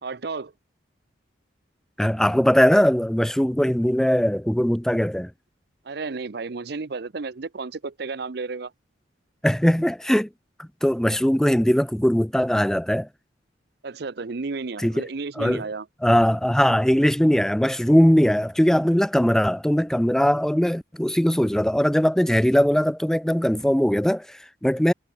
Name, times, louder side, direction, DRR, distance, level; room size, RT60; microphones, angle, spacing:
voice 1, 0.0-0.5 5.8-8.7 13.8-15.9, right 4 dB, 60° right, 0.7 m, -32 dB
voice 2, 2.0-5.3 9.4-10.3 10.6-13.1 14.8-15.0 15.4-15.6 16.0-24.9, equal, 5° left, 0.4 m, -20 dB
head